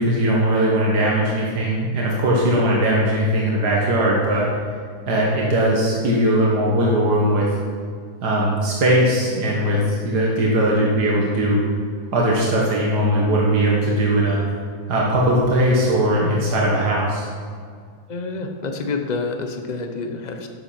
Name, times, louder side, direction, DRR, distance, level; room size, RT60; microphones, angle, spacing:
voice 1, 0.0-4.5 5.1-7.5 8.2-11.6 12.1-14.4 14.9-17.3, right 1 dB, 85° right, -4 dB, 2.1 m, -19 dB
voice 2, 18.1-20.5, left 3 dB, 35° left, 5 dB, 0.8 m, -28 dB
11.0 x 7.6 x 5.8 m, 2.1 s
omnidirectional pair, 1.7 m